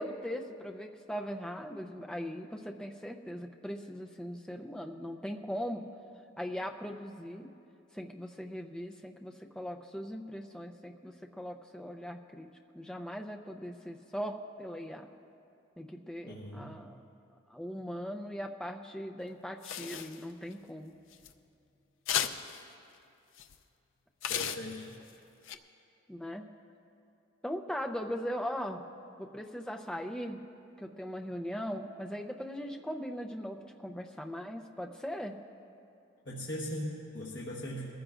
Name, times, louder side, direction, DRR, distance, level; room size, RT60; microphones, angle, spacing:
voice 1, 0.0-5.8 6.4-7.5 7.9-12.5 12.7-15.1 15.8-16.9 17.5-20.9 26.1-26.5 27.4-28.8 29.2-30.4 30.8-35.4, equal, 5° left, 2 dB, 0.5 m, -39 dB
voice 2, 16.2-16.8 24.2-24.9 36.2-37.9, equal, 60° left, -5 dB, 1.4 m, -39 dB
sound 1, 19.6-20.5 21.1-21.3 22.1-22.6 23.4-23.5 24.2-25.1 25.5-25.6, left 9 dB, 75° left, 0.5 m, -34 dB
21.5 x 15.0 x 2.5 m, 2.7 s
head